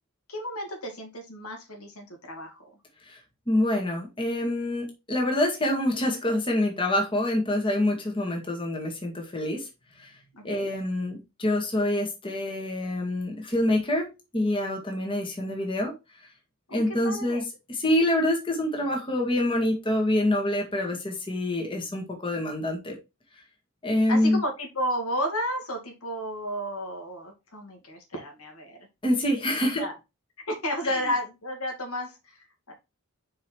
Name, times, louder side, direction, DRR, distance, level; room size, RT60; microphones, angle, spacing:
voice 1, 0.3-2.8 10.3-10.7 16.7-17.4 24.1-28.8 29.6-29.9 30.4-32.7, equal, 80° left, 2.3 m, -33 dB
voice 2, 3.5-9.7 10.0-10.1 10.4-15.9 16.7-17.4 17.7-23.0 23.8-24.4 29.0-29.9 30.8-31.0, left 1 dB, 25° left, 1.8 m, -26 dB
5.5 x 4.9 x 4.5 m
head